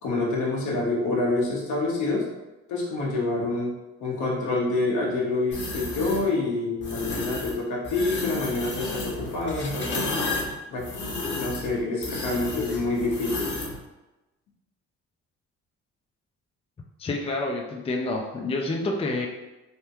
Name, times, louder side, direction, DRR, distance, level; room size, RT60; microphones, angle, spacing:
voice 1, 0.0-2.3 2.7-3.7 4.0-10.1 10.7-10.8 11.4-13.5, left 2 dB, 75° left, -3 dB, 1.0 m, -27 dB
sound 1, 5.5-6.2 6.8-7.5 7.8-13.8, left 2 dB, 40° left, 0.9 m, -32 dB
voice 2, 17.0-19.3, left 2 dB, 20° left, 1 dB, 0.4 m, -28 dB
3.5 x 2.2 x 2.9 m, 1.0 s
cardioid pair, 90°, 30 cm